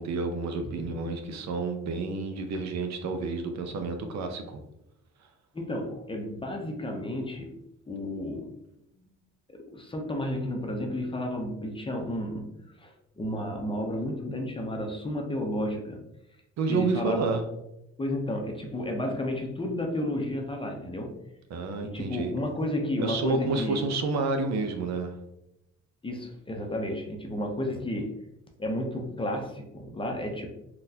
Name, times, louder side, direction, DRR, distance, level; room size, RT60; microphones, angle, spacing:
voice 1, 0.0-4.6 16.6-17.4 21.5-22.3 23.0-25.1, right 3 dB, 65° right, 6 dB, 0.6 m, -30 dB
voice 2, 5.5-7.5 7.9-8.5 9.5-12.5 12.8-16.0 16.7-17.3 18.0-21.1 21.8-23.8 26.0-28.1 28.6-30.5, left 1 dB, 15° left, 2 dB, 0.6 m, -32 dB
3.8 x 2.2 x 2.7 m, 0.86 s
cardioid pair, 90°, 30 cm